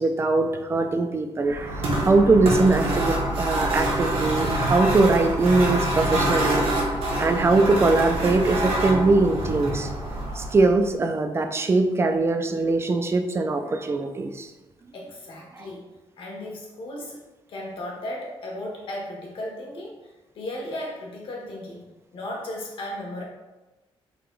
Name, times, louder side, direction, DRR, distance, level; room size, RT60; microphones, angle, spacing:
voice 1, 0.0-6.7 7.2-9.9 10.4-14.5 15.6-15.7, right 3 dB, 25° right, 7 dB, 0.4 m, -21 dB
sound 1, 1.5-10.8, right 1 dB, 75° right, 1.2 m, -26 dB
voice 2, 14.9-15.8 16.2-17.2 17.5-20.0 20.3-21.8 22.1-23.2, left 1 dB, 60° left, -2 dB, 1.3 m, -35 dB
3.9 x 3.0 x 4.5 m, 1.1 s
cardioid pair, 140°, 10 cm